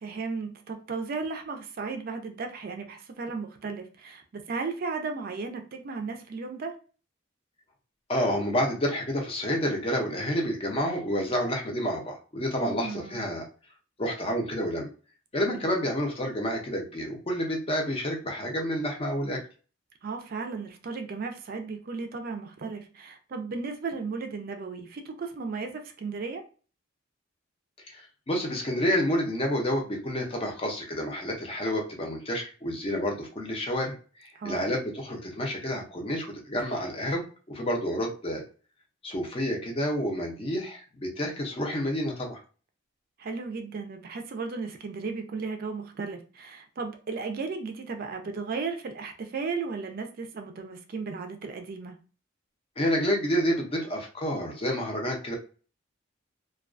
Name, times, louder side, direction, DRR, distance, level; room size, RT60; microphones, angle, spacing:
voice 1, 0.0-6.8 12.6-13.2 15.5-15.7 20.0-26.4 34.4-34.7 43.2-52.0, right 4 dB, 50° right, 5 dB, 0.4 m, -35 dB
voice 2, 8.1-13.4 14.0-14.9 15.3-19.4 27.9-33.9 34.2-38.4 39.0-42.4 52.8-55.4, equal, 30° left, 1 dB, 0.6 m, -29 dB
2.3 x 2.2 x 2.4 m, 0.37 s
head